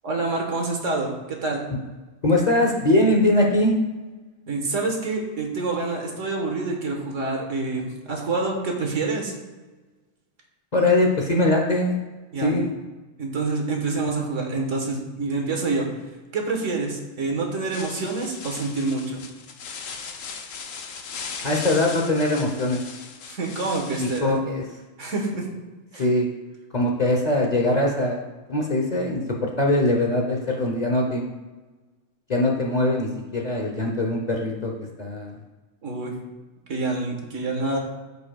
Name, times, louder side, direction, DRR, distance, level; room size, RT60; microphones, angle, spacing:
voice 1, 0.0-1.6 4.5-9.3 12.3-12.5 13.2-15.9 16.3-19.2 23.3-24.3 25.0-25.4 25.9-26.0 35.8-36.1 36.7-37.8, right 3 dB, 70° right, 1 dB, 1.7 m, -27 dB
voice 2, 2.2-3.7 10.7-11.9 12.4-12.7 21.4-22.8 24.0-24.6 25.9-26.3 26.7-28.2 28.5-31.3 32.3-34.7 35.0-35.3, left 1 dB, 40° left, 0 dB, 0.8 m, -22 dB
sound 1, 17.7-24.2, left 5 dB, 80° left, 1.2 m, -38 dB
13.5 x 5.1 x 2.3 m, 1.2 s
omnidirectional pair, 1.4 m